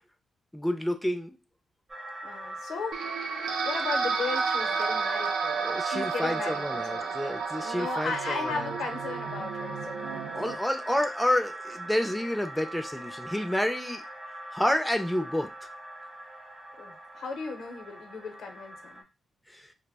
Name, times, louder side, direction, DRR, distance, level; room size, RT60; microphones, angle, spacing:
voice 1, 0.5-1.4 5.6-8.8 10.3-14.0 14.5-15.7 19.5-19.7, left 1 dB, 5° left, 6 dB, 0.4 m, -29 dB
sound 1, 1.9-19.0, right 1 dB, 35° right, 0.8 m, -41 dB
voice 2, 2.2-3.1 3.6-5.7 5.9-7.1 7.6-10.4 16.8-19.0, left 4 dB, 75° left, 5 dB, 0.6 m, -36 dB
sound 2, 2.9-10.6, right 5 dB, 85° right, 0.3 m, -31 dB
2.2 x 2.0 x 3.3 m, 0.25 s
cardioid pair, 70°, 0 cm